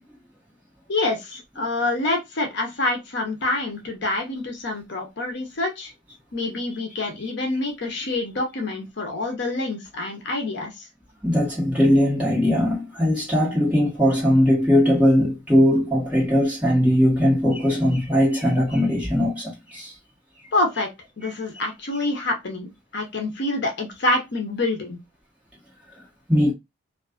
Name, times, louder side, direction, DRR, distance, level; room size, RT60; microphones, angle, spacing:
voice 1, 0.9-5.9 6.3-10.9 20.5-20.9 21.2-25.0, left 2 dB, 55° left, 0.6 m, -26 dB
voice 2, 11.2-19.9 21.2-21.3 26.3-26.5, equal, 5° right, 1.0 m, -20 dB
2.4 x 2.3 x 2.3 m
head